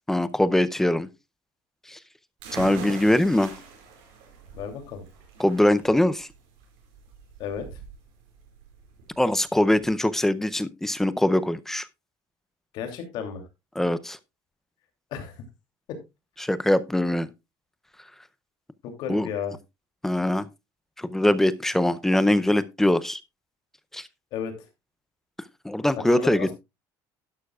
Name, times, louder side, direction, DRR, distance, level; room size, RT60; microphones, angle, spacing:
voice 1, 0.1-1.1 1.9-2.0 2.5-3.5 5.4-6.3 9.2-11.9 13.8-14.2 16.4-17.3 19.1-19.3 20.0-20.5 21.0-23.2 23.9-24.1 25.6-26.5, left 1 dB, 5° left, 0.5 m, -22 dB
sound 1, 2.4-9.9, right 4 dB, 90° right, 5.3 m, -42 dB
voice 2, 4.5-5.0 7.4-7.8 12.7-13.4 15.1-15.4 15.9-16.0 18.8-19.5 24.3-24.7 26.0-26.5, left 7 dB, 65° left, 2.8 m, -33 dB
11.5 x 11.5 x 2.3 m
cardioid pair, 155°, 8 cm